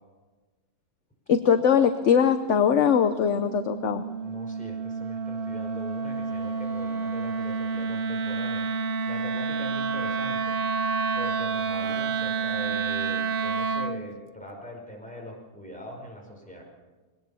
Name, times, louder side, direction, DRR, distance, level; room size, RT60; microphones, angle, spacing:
voice 1, 1.3-4.0, left 7 dB, 55° left, 9 dB, 1.0 m, -21 dB
Wind instrument woodwind instrument, 2.5-14.0, right 5 dB, 50° right, 0.7 m, -29 dB
voice 2, 4.2-8.7 9.1-10.6 11.1-16.6, equal, 5° left, -1 dB, 5.0 m, -42 dB
21.0 x 18.5 x 7.0 m, 1.3 s
omnidirectional pair, 1.6 m